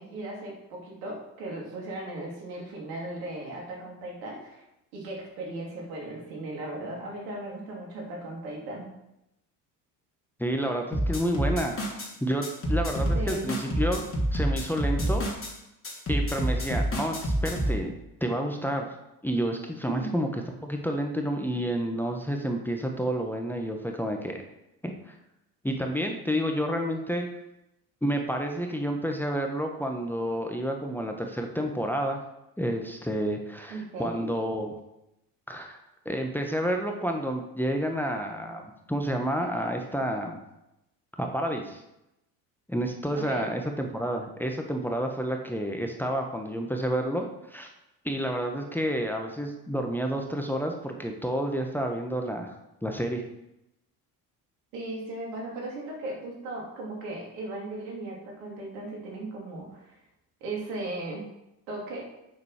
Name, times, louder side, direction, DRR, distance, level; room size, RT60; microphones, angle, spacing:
voice 1, 0.0-4.6 4.9-8.9 13.1-13.5 19.9-20.1 33.7-34.3 43.2-43.5 54.7-60.0 60.4-61.2 61.7-62.0, right 2 dB, 75° right, -2 dB, 3.0 m, -37 dB
voice 2, 10.4-11.7 12.2-14.1 14.3-15.2 16.1-17.9 18.2-19.0 19.2-20.3 20.6-24.4 24.8-25.2 25.6-27.3 28.0-32.2 32.6-34.7 35.5-35.8 36.0-40.4 41.2-41.8 42.7-47.7 48.0-52.5 52.8-53.2, equal, 5° left, 2 dB, 1.2 m, -30 dB
sound 1, 10.9-12.1 12.4-15.5 15.8-17.8, equal, 25° left, 2.9 m, -27 dB
8.7 x 6.6 x 5.0 m, 0.88 s
hypercardioid pair, 65°, 49 cm